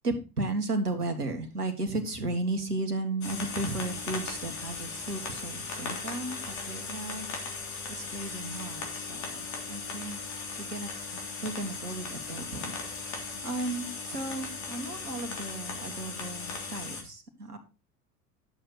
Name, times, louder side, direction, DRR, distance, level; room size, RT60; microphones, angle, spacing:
voice 1, 0.0-7.3 7.9-10.2 10.6-17.6, right 2 dB, 80° right, 7 dB, 1.9 m, -35 dB
sound 1, 3.2-17.0, left 4 dB, 40° left, 3.3 m, -38 dB
11.0 x 7.2 x 4.2 m, 0.30 s
figure-of-eight pair, 80°, 45 cm